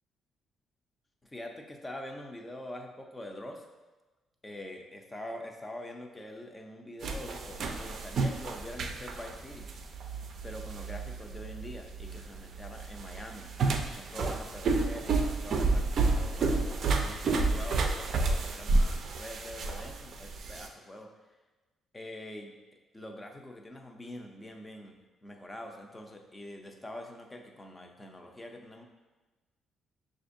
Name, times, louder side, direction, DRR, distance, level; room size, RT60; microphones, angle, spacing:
voice 1, 1.2-3.6 4.4-9.7 10.4-13.5 13.9-21.1 21.9-22.5 22.9-25.0 25.2-28.8, left 1 dB, 20° left, 2 dB, 0.6 m, -44 dB
sound 1, 7.0-20.7, right 3 dB, 60° right, 0.4 m, -30 dB
6.0 x 2.6 x 2.6 m, 1.2 s
cardioid pair, 90°, 0 cm